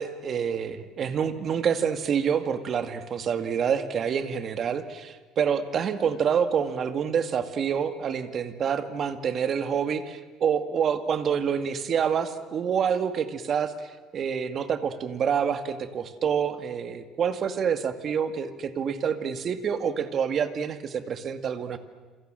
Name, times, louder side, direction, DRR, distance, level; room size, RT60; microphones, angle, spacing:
voice 1, 0.0-13.7 14.1-21.8, right 7 dB, 40° right, 9 dB, 2.0 m, -27 dB
27.5 x 27.5 x 7.7 m, 1.4 s
cardioid pair, 140°, 0 cm